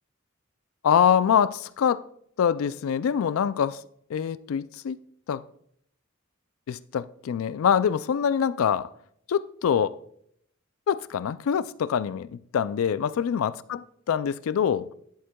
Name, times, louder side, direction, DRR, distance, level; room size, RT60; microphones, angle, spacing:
voice 1, 0.8-2.0 2.4-3.8 4.1-5.0 5.3-5.4 6.7-8.9 9.3-10.0 10.9-13.6 14.1-14.9, left 8 dB, 85° left, 0.3 m, -24 dB
10.5 x 8.0 x 2.2 m
head